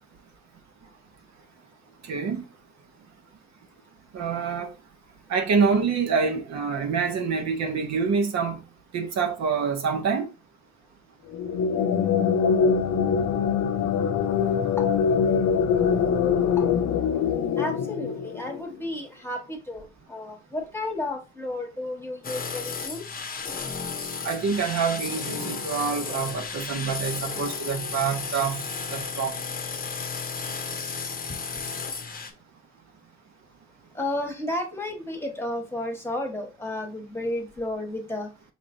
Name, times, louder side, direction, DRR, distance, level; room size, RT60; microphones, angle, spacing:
voice 1, 2.0-2.4 4.1-4.7 5.3-8.6 8.9-10.3 24.2-28.6 28.9-29.4, right 5 dB, 65° right, 0.9 m, -26 dB
sound 1, 11.3-18.7, left 6 dB, 65° left, 0.5 m, -23 dB
voice 2, 17.6-23.1 31.6-31.7 33.9-38.3, left 1 dB, 10° left, 1.2 m, -32 dB
sound 2, 22.2-32.3, left 5 dB, 30° left, 0.7 m, -33 dB
5.1 x 3.1 x 2.6 m
cardioid pair, 90°, 30 cm